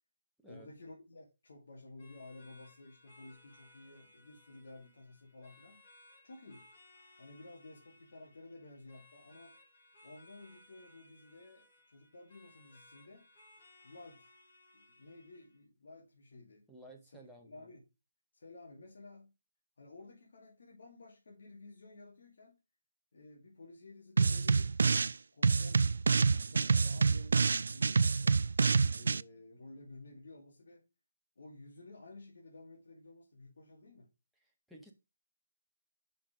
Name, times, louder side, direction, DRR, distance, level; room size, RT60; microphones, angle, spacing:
voice 1, 0.4-5.8 6.2-6.7 7.2-9.6 10.0-13.3 13.8-14.3 14.7-16.6 17.4-17.8 18.3-19.3 19.8-22.6 23.1-28.4 28.9-30.9 31.4-34.1, left 2 dB, 60° left, 2.4 m, -54 dB
sound 1, 2.0-15.6, left 2 dB, 40° left, 3.3 m, -62 dB
voice 2, 16.7-17.7 34.7-34.9, right 1 dB, ahead, 1.0 m, -54 dB
sound 2, 24.2-25.1 25.4-29.2, right 4 dB, 70° right, 0.3 m, -27 dB
5.8 x 5.7 x 5.1 m
hypercardioid pair, 170°, 0 cm